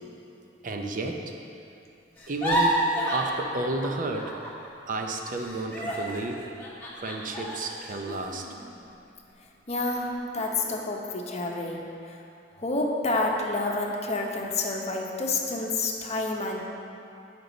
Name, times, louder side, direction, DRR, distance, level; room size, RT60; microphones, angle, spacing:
voice 1, 0.6-1.3 2.3-4.4 4.9-6.5 6.9-8.5, right 2 dB, 50° right, 3 dB, 0.6 m, -32 dB
sound 1, 2.2-4.7 4.9-9.3 9.8-10.0 10.4-10.9, right 1 dB, 10° left, 1.3 m, -31 dB
voice 2, 9.7-11.8 12.1-12.2 12.6-16.7, left 2 dB, 40° left, 0 dB, 0.8 m, -29 dB
9.7 x 5.2 x 3.9 m, 2.7 s
head